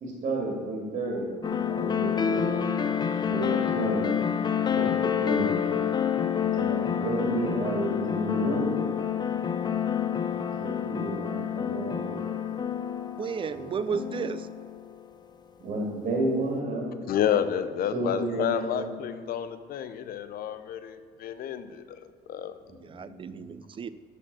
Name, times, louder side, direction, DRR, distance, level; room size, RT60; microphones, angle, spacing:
voice 1, 0.0-4.1 4.7-5.6 6.5-8.8 10.1-12.3 13.5-13.7 15.6-17.0 17.9-18.9 22.7-23.5, right 1 dB, 50° right, -1 dB, 2.5 m, -32 dB
sound 1, 1.4-15.0, left 8 dB, 25° left, 0.5 m, -28 dB
voice 2, 13.2-14.5 22.8-23.9, right 6 dB, 30° right, 14 dB, 0.4 m, -33 dB
voice 3, 17.1-22.0 22.3-22.5, left 9 dB, 60° left, 11 dB, 0.7 m, -30 dB
12.5 x 4.2 x 6.1 m, 2.1 s
cardioid pair, 110°, 17 cm